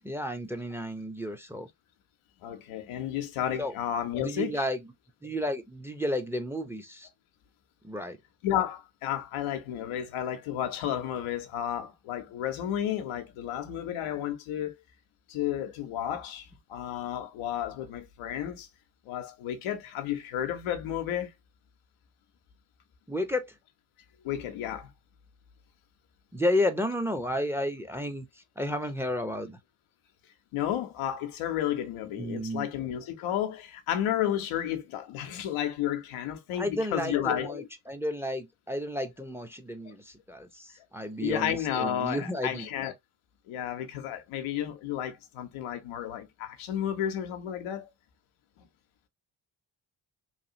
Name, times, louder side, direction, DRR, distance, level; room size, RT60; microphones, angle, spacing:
voice 1, 0.0-1.7 3.6-3.7 4.2-4.8 5.2-7.1 7.8-8.2 23.1-23.5 26.3-28.3 28.6-29.6 32.2-32.7 36.6-42.7, left 1 dB, 5° right, 0.6 m, -32 dB
voice 2, 2.4-4.6 8.4-14.7 15.3-18.7 19.1-21.3 24.2-24.9 30.5-37.7 39.8-39.9 40.8-40.9 41.2-42.9 43.5-47.9 48.6-48.7, left 10 dB, 85° left, 0.7 m, -32 dB
3.1 x 2.3 x 2.7 m
supercardioid pair, 55°, 48 cm